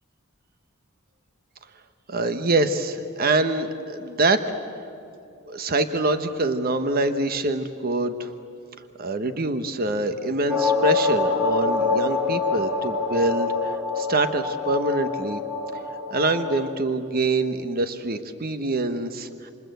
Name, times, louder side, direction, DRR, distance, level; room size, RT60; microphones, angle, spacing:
voice 1, 2.1-4.4 5.5-8.3 9.0-15.4 16.1-19.5, right 2 dB, 50° right, 9 dB, 1.2 m, -25 dB
sound 1, 10.5-16.7, left 3 dB, 10° right, 3.5 m, -25 dB
28.0 x 26.5 x 8.0 m, 2.8 s
head